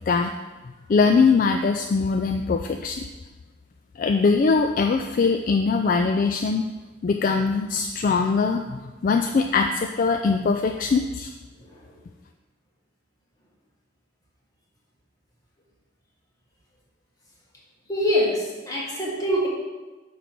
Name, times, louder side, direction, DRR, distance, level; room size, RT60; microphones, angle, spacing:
voice 1, 0.9-3.1 4.0-6.7 7.0-11.3, left 4 dB, 45° left, 5 dB, 0.3 m, -22 dB
voice 2, 11.6-11.9 17.9-19.5, equal, 20° left, -4 dB, 1.6 m, -25 dB
9.0 x 3.2 x 5.9 m, 1.2 s
head